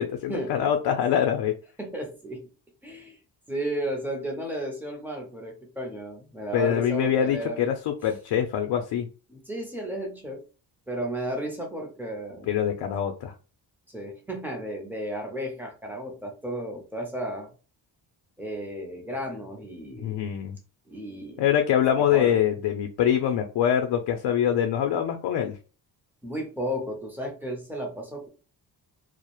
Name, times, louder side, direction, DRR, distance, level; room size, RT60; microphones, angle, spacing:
voice 1, 0.0-1.5 6.5-9.1 12.5-13.3 20.0-20.6 21.4-25.6, left 9 dB, 75° left, 4 dB, 0.5 m, -24 dB
voice 2, 1.8-2.5 2.8-3.2 3.5-7.7 8.0-8.1 9.3-10.4 10.9-12.5 13.9-17.5 18.4-20.3 20.9-21.4 22.1-22.4 26.2-28.3, right 1 dB, 5° right, 1 dB, 0.5 m, -33 dB
2.3 x 2.0 x 2.9 m, 0.35 s
wide cardioid pair, 170°, 42 cm